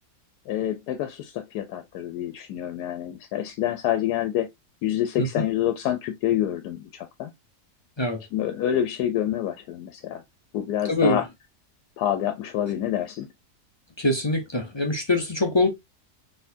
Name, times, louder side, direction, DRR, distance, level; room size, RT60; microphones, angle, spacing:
voice 1, 0.5-4.5 4.8-7.3 8.3-10.2 10.5-11.2 12.0-13.3, left 11 dB, 85° left, 1.2 m, -27 dB
voice 2, 10.9-11.2 14.0-15.7, left 2 dB, 40° left, 0.4 m, -23 dB
4.2 x 3.6 x 2.7 m
omnidirectional pair, 1.7 m